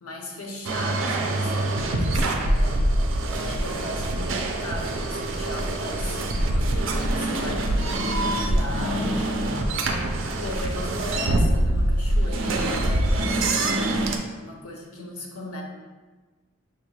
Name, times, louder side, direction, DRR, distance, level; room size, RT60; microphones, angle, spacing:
voice 1, 0.0-2.9 3.3-9.7 10.0-14.0 14.3-15.6, left 1 dB, 85° left, 0 dB, 0.8 m, -37 dB
sound 1, 0.6-14.2, right 1 dB, 60° right, 0.4 m, -24 dB
6.0 x 2.3 x 3.2 m, 1.3 s
head